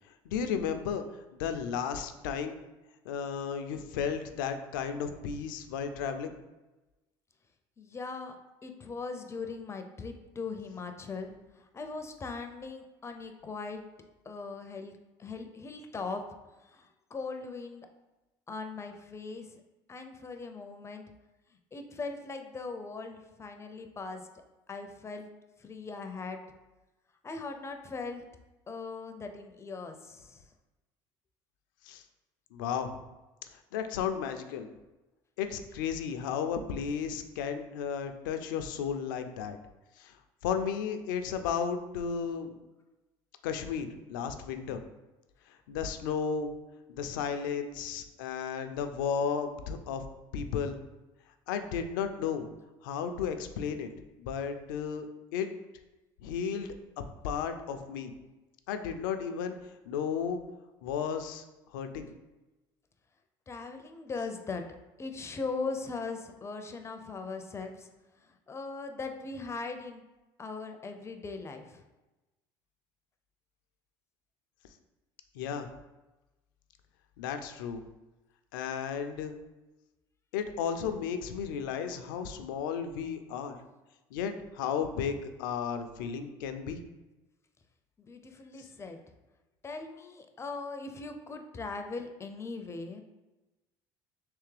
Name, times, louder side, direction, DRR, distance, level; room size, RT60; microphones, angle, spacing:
voice 1, 0.3-1.0 1.4-2.6 3.1-6.4 31.8-32.0 32.5-33.0 33.7-34.7 35.4-39.6 40.0-40.2 40.4-42.6 43.4-44.8 45.7-46.5 46.9-50.0 50.3-50.8 51.5-52.5 52.8-53.9 54.2-55.1 55.3-55.5 56.2-56.7 57.2-58.1 58.7-59.6 59.9-60.4 60.8-61.4 61.7-62.1 75.3-75.7 77.2-77.8 78.5-79.3 80.3-83.6 84.1-86.8 88.6-88.7, left 7 dB, 90° left, 7 dB, 0.4 m, -33 dB
voice 2, 7.8-8.4 8.6-11.3 11.7-13.8 14.3-16.2 16.6-17.9 18.5-19.5 19.9-21.0 21.7-24.2 24.7-25.3 25.6-26.4 27.2-28.2 28.7-30.4 63.5-64.6 65.0-67.9 68.5-70.0 70.4-71.8 88.1-89.0 89.6-93.0, left 4 dB, 25° left, 6 dB, 0.4 m, -39 dB
3.3 x 3.2 x 3.2 m, 1.1 s
supercardioid pair, 85°, 11 cm